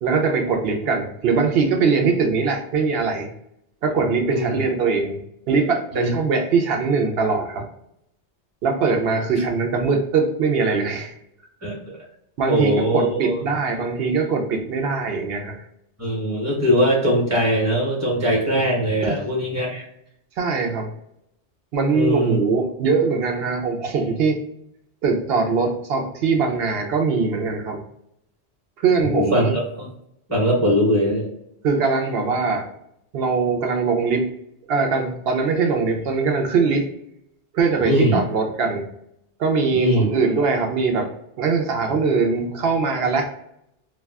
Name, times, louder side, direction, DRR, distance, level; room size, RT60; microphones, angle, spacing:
voice 1, 0.0-3.3 3.8-5.2 5.5-7.6 8.6-11.1 12.4-15.5 19.0-19.2 20.4-20.9 21.7-24.4 25.0-27.8 28.8-29.5 31.6-32.7 33.1-34.2 34.7-36.9 37.5-38.8 39.4-41.1 41.4-43.3, right 4 dB, 65° right, 3 dB, 0.8 m, -21 dB
voice 2, 11.6-11.9 12.5-13.3 16.0-19.9 21.9-22.4 29.1-29.9 30.3-31.3 37.8-38.2 39.7-40.1, equal, 15° right, -3 dB, 0.9 m, -21 dB
2.3 x 2.3 x 3.4 m, 0.77 s
omnidirectional pair, 1.2 m